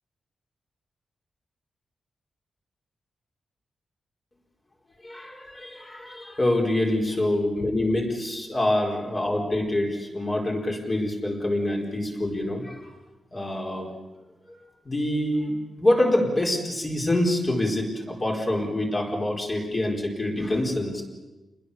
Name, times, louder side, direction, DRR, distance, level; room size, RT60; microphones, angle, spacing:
voice 1, 5.0-12.9 13.3-13.9 14.5-21.0, left 1 dB, 20° left, 0 dB, 4.3 m, -26 dB
28.5 x 20.5 x 6.9 m, 1.1 s
wide cardioid pair, 170°, 0 cm